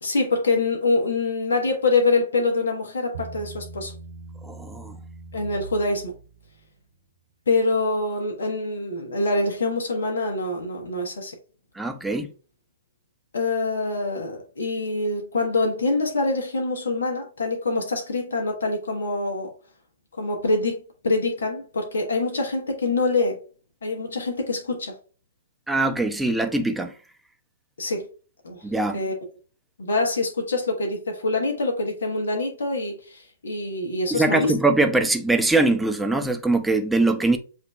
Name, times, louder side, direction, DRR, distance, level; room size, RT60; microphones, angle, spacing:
voice 1, 0.0-3.9 5.3-6.1 7.5-11.3 13.3-19.5 20.2-20.8 21.0-23.4 23.8-24.9 27.8-28.1 28.4-28.6 28.9-29.1 29.8-34.5, left 3 dB, 75° left, 1.2 m, -25 dB
Bass guitar, 3.1-6.5, right 4 dB, 90° right, 1.4 m, -40 dB
voice 2, 4.4-4.9 11.8-12.3 25.7-26.9 28.6-29.0 34.1-37.4, right 2 dB, 5° right, 0.7 m, -22 dB
7.7 x 2.7 x 2.3 m
hypercardioid pair, 120°, 0 cm